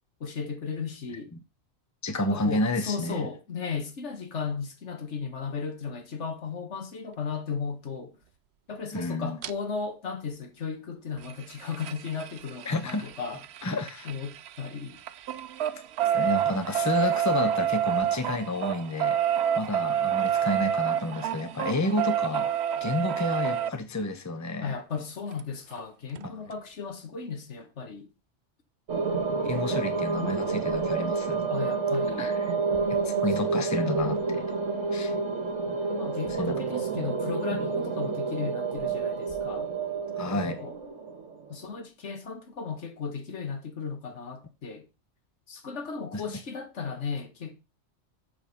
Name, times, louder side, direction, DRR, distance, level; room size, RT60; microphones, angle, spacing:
voice 1, 0.2-1.3 2.2-8.2 8.7-13.4 14.1-15.0 24.6-28.1 29.7-29.8 30.1-30.4 31.5-32.3 35.9-39.7 40.3-40.7 41.5-44.9 45.5-47.5, left 5 dB, 70° left, 1.7 m, -35 dB
voice 2, 2.0-3.3 8.9-9.4 12.6-13.1 13.6-14.1 16.1-19.2 19.6-22.5 22.8-24.7 26.2-26.3 29.4-31.5 32.2-32.6 32.9-34.4 34.9-35.1 36.4-36.5 40.2-40.6 46.1-46.2, left 2 dB, 15° left, 0.9 m, -30 dB
sound 1, 9.4-9.5 11.2-14.7 15.0-23.7 25.4-25.5 25.8-25.9 26.2-26.3, right 10 dB, 65° right, 0.8 m, -28 dB
sound 2, 28.9-41.4, right 4 dB, 90° right, 1.8 m, -29 dB
7.5 x 6.4 x 5.3 m
omnidirectional pair, 1.2 m